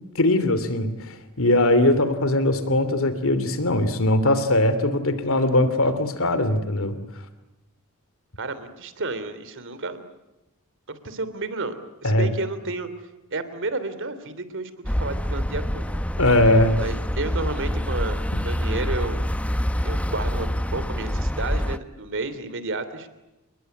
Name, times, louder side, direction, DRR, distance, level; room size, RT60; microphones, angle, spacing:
voice 1, 0.1-7.0 12.0-12.3 16.2-16.8, left 1 dB, 65° left, 12 dB, 2.9 m, -20 dB
voice 2, 8.4-10.1 10.9-12.9 13.3-16.0 16.8-19.2 19.8-23.1, right 3 dB, 60° right, 13 dB, 3.1 m, -31 dB
sound 1, 14.8-21.8, equal, 5° left, 0.9 m, -26 dB
30.0 x 20.5 x 9.4 m, 0.98 s
head